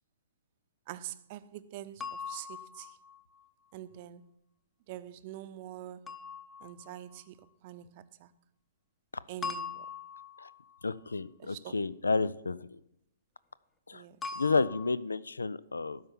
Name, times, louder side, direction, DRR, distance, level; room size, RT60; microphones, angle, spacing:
voice 1, 0.9-3.0 3.7-4.2 4.9-6.1 6.6-8.3 9.3-9.9 11.4-11.8 13.9-14.4, right 12 dB, 40° right, 0.7 m, -45 dB
sound 1, 2.0-3.5 6.1-7.2 9.4-10.8 14.2-15.0, left 5 dB, 15° left, 0.9 m, -41 dB
voice 2, 10.8-12.7 13.9-14.0 14.4-16.0, left 4 dB, 80° left, 0.4 m, -31 dB
12.5 x 5.6 x 7.4 m
figure-of-eight pair, 120°, 0 cm